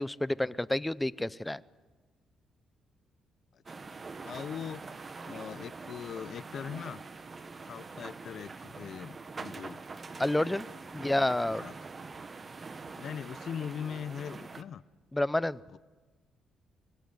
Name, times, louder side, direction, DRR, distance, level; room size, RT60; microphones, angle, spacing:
voice 1, 0.0-1.6 10.2-10.7 10.9-11.6 15.1-15.6, left 1 dB, 10° left, 18 dB, 0.6 m, -29 dB
sound 1, 3.7-14.6, right 4 dB, 35° right, 1.3 m, -44 dB
voice 2, 4.2-4.9 5.3-7.0 7.7-9.8 11.0-11.1 11.6-11.7 13.0-14.8 15.7-15.8, left 8 dB, 60° left, 19 dB, 0.6 m, -40 dB
25.0 x 17.5 x 9.6 m, 1.3 s
cardioid pair, 90°, 0 cm